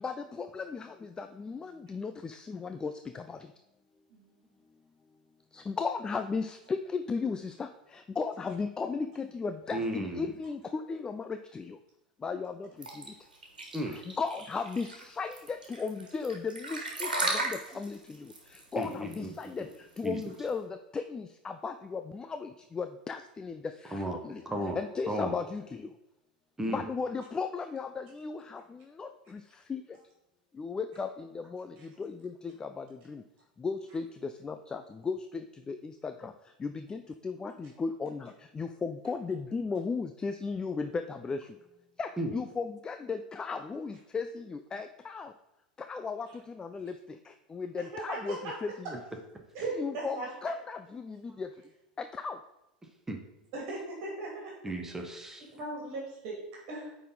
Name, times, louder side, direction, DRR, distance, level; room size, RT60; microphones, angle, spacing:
voice 1, 0.0-3.4 5.5-11.8 12.2-12.7 13.9-18.3 18.7-19.7 20.0-24.4 24.7-25.9 26.7-29.4 29.7-29.8 30.6-33.2 33.6-36.3 36.6-41.5 42.0-45.3 45.8-46.9 47.3-49.0 49.8-51.5 52.0-52.4, left 4 dB, 15° left, 9 dB, 0.4 m, -36 dB
voice 2, 9.7-10.3 13.7-14.0 18.7-19.5 20.0-20.2 23.9-24.2 24.4-24.8 25.1-25.3 26.6-26.8 42.2-42.3 53.1-53.2 54.6-55.5, right 1 dB, 10° right, 3 dB, 1.1 m, -34 dB
sound 1, 12.8-20.5, right 2 dB, 85° right, 1.5 m, -36 dB
voice 3, 47.8-48.5 49.5-50.3 53.5-54.5 55.5-56.9, right 2 dB, 50° right, -2 dB, 2.1 m, -38 dB
9.1 x 4.0 x 3.9 m, 0.91 s
figure-of-eight pair, 90°, 5 cm